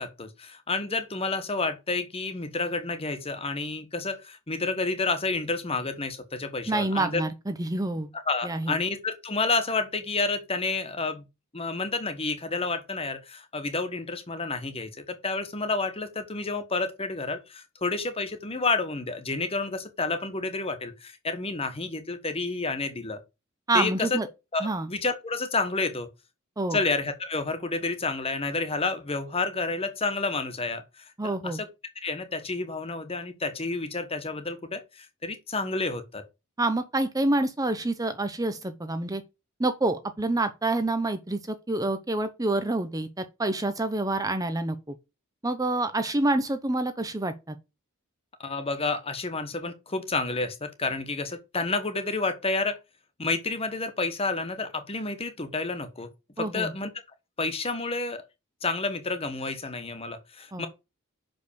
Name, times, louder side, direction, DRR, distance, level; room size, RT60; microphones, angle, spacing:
voice 1, 0.0-7.2 8.3-11.2 11.5-23.2 23.7-24.2 24.5-26.1 26.7-31.7 31.9-36.2 48.4-52.8 53.2-56.1 56.4-56.9 57.4-58.2 58.6-60.7, left 3 dB, 25° left, 1.3 m, -30 dB
voice 2, 6.7-8.1 8.4-8.8 23.7-24.3 24.6-24.9 26.6-26.8 31.2-31.6 36.6-39.2 39.6-44.8 45.4-47.5 56.4-56.7 60.5-60.6, right 2 dB, 15° right, 0.7 m, -27 dB
6.1 x 5.3 x 6.9 m
head